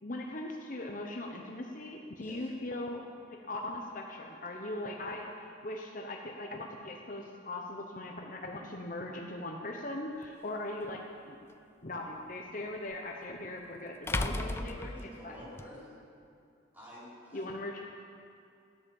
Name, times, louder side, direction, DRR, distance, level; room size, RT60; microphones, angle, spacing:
voice 1, 0.0-3.0 3.3-11.0 11.3-11.4 11.8-14.9 15.2-15.4 17.3-17.8, left 1 dB, 40° left, 1 dB, 1.0 m, -40 dB
sound 1, 10.2-10.3 12.9-13.0 14.1-15.7, left 2 dB, 10° left, 0.3 m, -34 dB
voice 2, 14.1-16.0 16.7-17.5, equal, 10° right, -8 dB, 4.5 m, -48 dB
15.0 x 10.5 x 7.2 m, 2.5 s
head